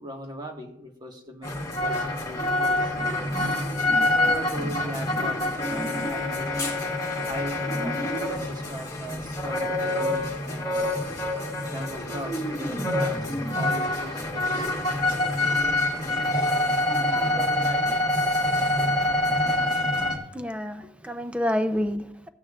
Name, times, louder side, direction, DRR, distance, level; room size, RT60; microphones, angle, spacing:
voice 1, 0.0-1.5 1.8-3.0 4.0-6.5 7.2-10.9 11.7-14.7 15.4-16.6 17.1-18.0, equal, 25° right, 2 dB, 1.6 m, -39 dB
sound 1, 1.4-20.2, left 1 dB, 20° left, 2.0 m, -26 dB
voice 2, 20.3-22.3, equal, 5° right, 9 dB, 0.6 m, -28 dB
15.0 x 9.0 x 2.5 m, 0.74 s
head